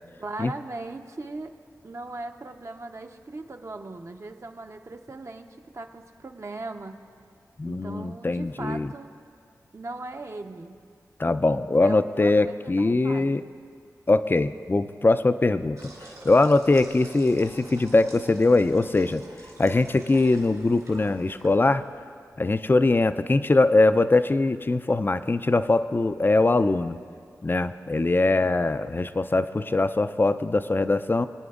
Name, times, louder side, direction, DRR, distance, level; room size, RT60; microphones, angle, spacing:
voice 1, 0.2-1.5 1.8-7.0 7.6-9.1 9.7-10.8 11.8-13.5, right 2 dB, 50° right, 5 dB, 0.7 m, -39 dB
voice 2, 7.6-8.9 11.2-13.4 14.1-15.9 16.2-19.2 19.6-21.8 22.4-27.0 27.4-31.3, left 2 dB, 30° left, 11 dB, 0.4 m, -22 dB
sound 1, 15.8-22.0, right 2 dB, 65° right, 2.5 m, -48 dB
25.0 x 9.3 x 2.4 m, 2.1 s
cardioid pair, 45°, 7 cm